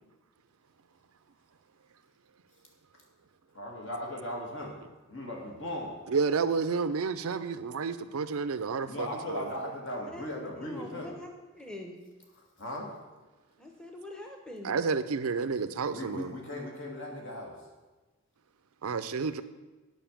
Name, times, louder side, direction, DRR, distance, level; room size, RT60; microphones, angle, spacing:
voice 1, 3.6-4.8 5.1-6.0 8.8-11.1 12.6-12.9 15.9-17.5, left 1 dB, 55° left, 2.0 m, -37 dB
voice 2, 6.1-9.5 14.6-16.3 18.8-19.4, right 5 dB, 80° right, 0.5 m, -30 dB
voice 3, 10.6-11.3 11.5-12.0 13.6-14.8, left 1 dB, 5° left, 0.9 m, -44 dB
9.1 x 5.3 x 7.3 m
head